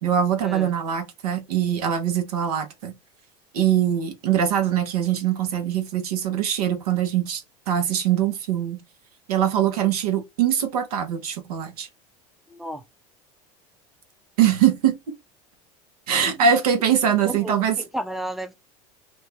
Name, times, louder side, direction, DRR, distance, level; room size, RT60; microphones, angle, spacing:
voice 1, 0.0-2.9 3.5-7.4 7.7-8.8 9.3-11.9 14.4-15.1 16.1-17.8, right 9 dB, 90° right, 0.9 m, -22 dB
voice 2, 12.5-12.8 17.4-18.5, right 1 dB, ahead, 0.5 m, -32 dB
2.6 x 2.3 x 3.2 m
supercardioid pair, 95°, 19 cm